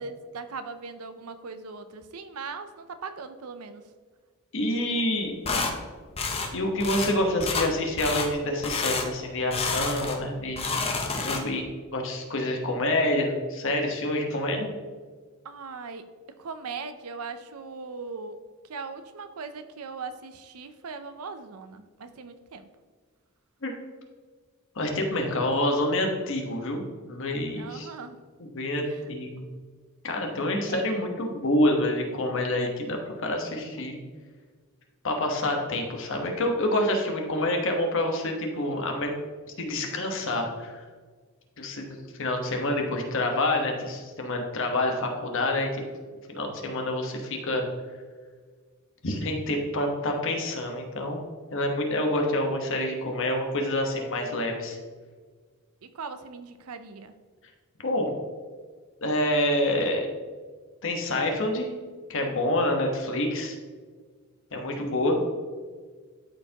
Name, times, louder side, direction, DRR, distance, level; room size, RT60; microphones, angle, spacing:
voice 1, 0.0-3.9 15.4-16.1 16.4-18.4 18.6-22.7 27.6-28.2 28.9-29.1 30.7-30.9 31.2-31.5 55.8-57.1, right 4 dB, 85° right, 10 dB, 0.6 m, -39 dB
voice 2, 4.5-5.3 6.5-10.6 11.1-11.6 11.9-14.7 23.6-23.7 24.7-27.9 28.5-29.4 30.0-34.0 35.0-39.1 39.6-40.8 41.6-45.8 46.3-47.6 49.0-51.2 51.5-54.8 57.8-58.1 59.0-60.1 60.8-61.7 62.1-63.6 64.5-65.2, left 1 dB, 60° left, 2 dB, 1.2 m, -27 dB
sound 1, 5.4-5.7 6.2-6.5 6.8-7.1 7.4-7.7 8.0-8.3 8.6-9.1 9.5-10.2 10.5-11.6, left 4 dB, 25° left, 0.7 m, -29 dB
12.5 x 4.5 x 2.9 m, 1.5 s
head